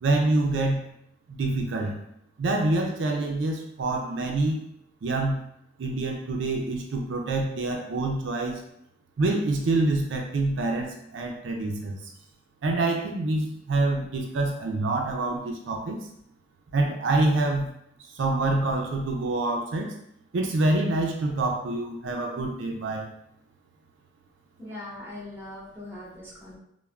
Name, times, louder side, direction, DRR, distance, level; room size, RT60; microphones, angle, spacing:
voice 1, 0.0-0.9 1.3-2.0 2.4-4.6 5.0-5.4 5.8-8.6 9.2-12.0 12.6-16.0 16.7-17.7 18.1-19.9 20.3-23.1, right 2 dB, 75° right, 2 dB, 0.4 m, -26 dB
voice 2, 24.6-26.6, left 1 dB, 10° right, -8 dB, 0.8 m, -40 dB
3.2 x 2.1 x 2.3 m, 0.75 s
head